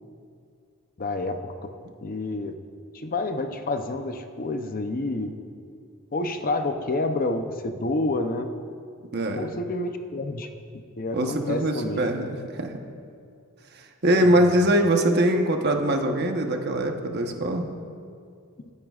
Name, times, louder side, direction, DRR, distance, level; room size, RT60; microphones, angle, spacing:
voice 1, 1.0-1.7 2.0-2.6 2.9-5.3 6.1-8.5 9.3-10.5 11.0-12.0 14.2-14.5, left 2 dB, 40° left, 7 dB, 0.6 m, -29 dB
voice 2, 9.1-9.5 11.1-12.8 13.7-17.7, right 1 dB, 50° right, 3 dB, 1.0 m, -23 dB
25.0 x 9.6 x 2.4 m, 2.4 s
head